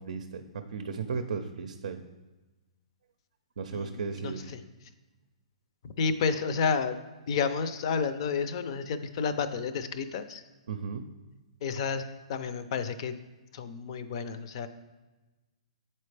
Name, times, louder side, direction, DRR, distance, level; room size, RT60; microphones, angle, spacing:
voice 1, 0.0-2.0 3.6-4.5 8.7-8.8 10.7-11.1, right 5 dB, 75° right, 7 dB, 0.5 m, -35 dB
voice 2, 3.7-4.6 5.8-7.0 7.3-10.4 11.6-13.2 13.5-14.7, left 5 dB, 50° left, 11 dB, 0.5 m, -31 dB
8.0 x 4.3 x 3.3 m, 1.2 s
hypercardioid pair, 145°, 4 cm